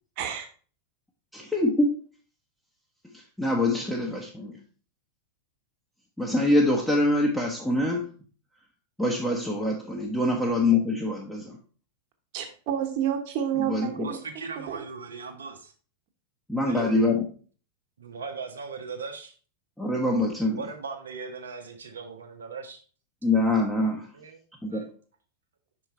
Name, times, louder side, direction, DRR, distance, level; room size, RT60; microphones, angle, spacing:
voice 1, 0.2-0.5 9.3-9.4 12.3-14.1 14.6-14.8, right 9 dB, 45° right, 4 dB, 1.3 m, -29 dB
voice 2, 1.3-1.9 3.4-4.5 6.2-8.1 9.0-11.6 13.7-14.2 16.5-17.2 19.8-20.6 23.2-24.1 24.6-24.8, left 2 dB, 5° left, -2 dB, 0.9 m, -24 dB
voice 3, 14.0-15.7 16.6-17.0 18.0-19.4 20.5-22.8 24.1-24.4 24.7-24.9, right 5 dB, 65° right, 4 dB, 0.8 m, -38 dB
5.7 x 4.6 x 4.2 m, 0.40 s
figure-of-eight pair, 90°, 0 cm